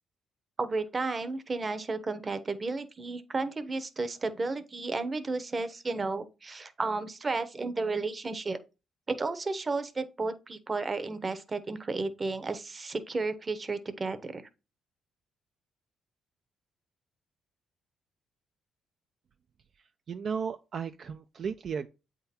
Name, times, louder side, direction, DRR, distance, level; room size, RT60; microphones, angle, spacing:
voice 1, 0.6-8.6 9.1-14.4, right 3 dB, 30° right, 0.9 m, -33 dB
voice 2, 20.1-21.9, right 6 dB, 55° right, 0.4 m, -34 dB
7.9 x 3.8 x 4.3 m
cardioid pair, 90°, 0 cm